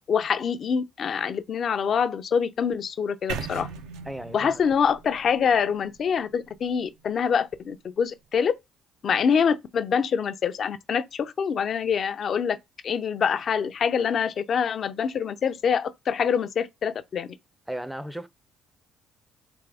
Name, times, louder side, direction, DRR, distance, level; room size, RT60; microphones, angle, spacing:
voice 1, 0.0-3.7 4.3-8.5 9.0-12.6 12.8-17.3, left 7 dB, 55° left, 0.5 m, -25 dB
sound 1, 3.3-7.3, right 5 dB, 85° right, 0.5 m, -39 dB
voice 2, 4.1-4.6 17.7-18.3, right 1 dB, 5° right, 0.5 m, -35 dB
3.5 x 3.3 x 3.4 m
supercardioid pair, 70°, 0 cm